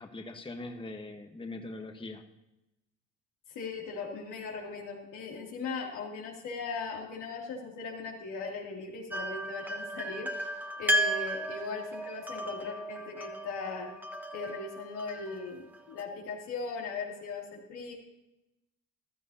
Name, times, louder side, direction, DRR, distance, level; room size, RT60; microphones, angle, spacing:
voice 1, 0.0-2.2, left 2 dB, 15° left, 4 dB, 1.2 m, -41 dB
voice 2, 3.5-10.3 10.8-13.9 14.3-17.9, left 4 dB, 85° left, -1 dB, 2.8 m, -39 dB
sound 1, 9.1-16.0, right 1 dB, 5° right, 1.3 m, -34 dB
15.5 x 12.5 x 2.8 m, 0.93 s
cardioid pair, 90°, 30 cm